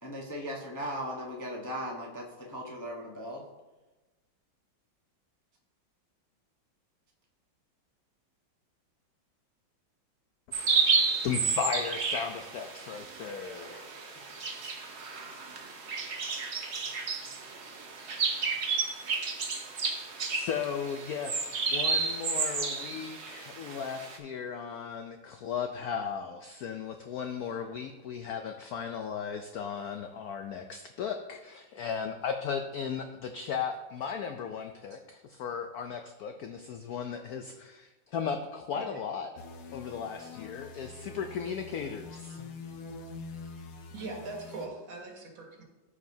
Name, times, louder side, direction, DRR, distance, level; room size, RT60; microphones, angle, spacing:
voice 1, 0.0-3.4, equal, 20° left, -2 dB, 0.5 m, -38 dB
sound 1, 10.5-24.2, right 4 dB, 50° right, 0.8 m, -32 dB
voice 2, 11.2-13.9 20.3-39.4 39.7-42.5, left 7 dB, 80° left, 6 dB, 0.8 m, -36 dB
sound 2, 39.4-44.7, left 4 dB, 60° left, 1.2 m, -45 dB
voice 3, 43.9-45.6, right 3 dB, 80° right, 0 dB, 2.3 m, -41 dB
13.5 x 4.9 x 2.7 m, 1.1 s
omnidirectional pair, 2.1 m